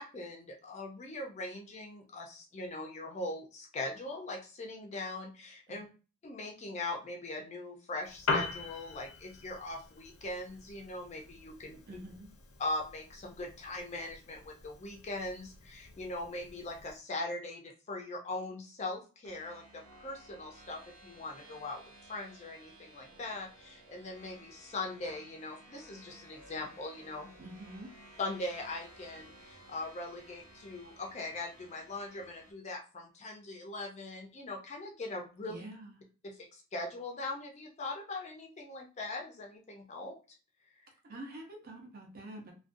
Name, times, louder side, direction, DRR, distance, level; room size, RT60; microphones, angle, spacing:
voice 1, 0.0-5.9 6.2-12.0 12.6-27.3 28.2-35.6 36.2-40.2, left 2 dB, 30° left, 2 dB, 0.4 m, -41 dB
Piano, 8.0-17.0, left 3 dB, 80° left, 0.6 m, -41 dB
voice 2, 11.9-12.3 27.4-27.9 35.4-36.0 41.0-42.5, right 1 dB, 45° right, 2 dB, 0.6 m, -47 dB
sound 1, 19.2-32.5, right 1 dB, 85° right, 0.6 m, -56 dB
2.4 x 2.2 x 2.5 m, 0.34 s
head